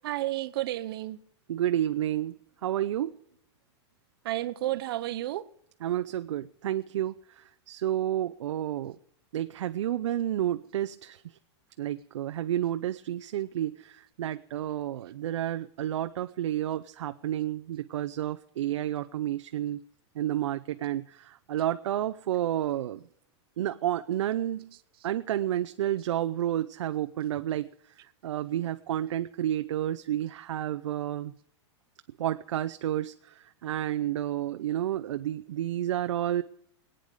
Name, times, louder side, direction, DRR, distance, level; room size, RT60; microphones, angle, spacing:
voice 1, 0.0-1.2 4.2-5.5, right 15 dB, 55° right, 0.9 m, -31 dB
voice 2, 1.5-3.2 5.8-9.0 9.3-11.4 11.8-19.8 20.2-23.0 23.6-24.7 25.0-27.7 28.0-31.3 32.2-36.4, right 12 dB, 85° right, 0.7 m, -30 dB
22.5 x 9.1 x 4.9 m
supercardioid pair, 170°, 15 cm